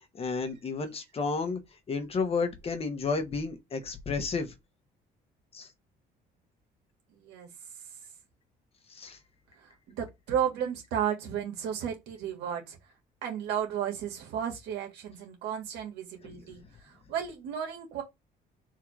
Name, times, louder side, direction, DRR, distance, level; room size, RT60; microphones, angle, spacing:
voice 1, 0.1-1.6 1.9-4.5 5.5-5.7 8.9-9.2, left 4 dB, 35° left, 1.1 m, -31 dB
voice 2, 7.1-7.5 9.6-12.8 13.2-18.0, right 9 dB, 85° right, 1.6 m, -33 dB
3.7 x 2.7 x 4.7 m
cardioid pair, 110°, 17 cm